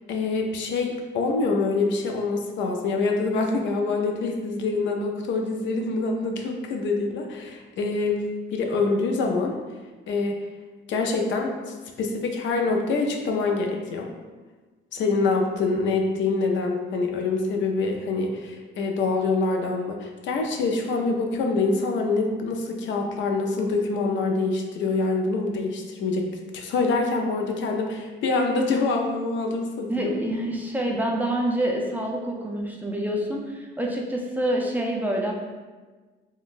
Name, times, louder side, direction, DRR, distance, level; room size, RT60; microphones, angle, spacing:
voice 1, 0.1-8.2 8.5-9.5 10.1-10.4 10.9-14.1 14.9-30.1, left 3 dB, 70° left, 2 dB, 0.5 m, -25 dB
voice 2, 29.9-35.3, right 1 dB, 10° right, -1 dB, 0.4 m, -27 dB
3.7 x 2.1 x 2.4 m, 1.3 s
cardioid pair, 90°, 20 cm